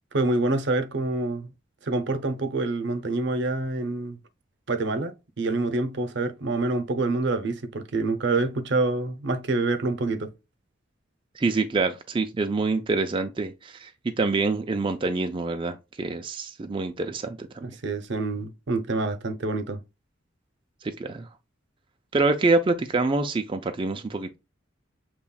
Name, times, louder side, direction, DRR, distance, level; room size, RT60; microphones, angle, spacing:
voice 1, 0.1-1.5 1.8-4.2 4.7-10.3 17.6-19.8, right 2 dB, 65° right, 0.7 m, -26 dB
voice 2, 11.4-17.8 20.8-21.3 22.1-24.4, right 3 dB, 25° right, 0.4 m, -26 dB
7.0 x 3.0 x 2.3 m
head